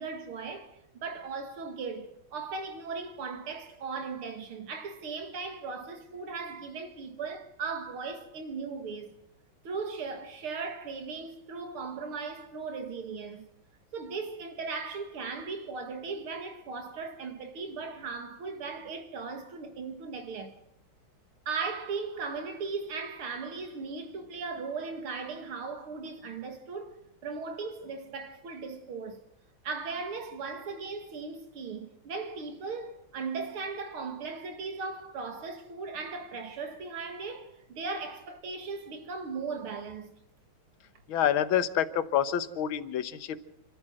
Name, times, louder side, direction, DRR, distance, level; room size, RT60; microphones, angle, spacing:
voice 1, 0.0-9.1 9.6-13.5 13.9-20.5 21.5-29.2 29.6-40.1, right 4 dB, 80° right, 2.8 m, -37 dB
voice 2, 41.1-43.5, left 9 dB, 70° left, 1.9 m, -28 dB
28.0 x 13.0 x 7.7 m
omnidirectional pair, 2.3 m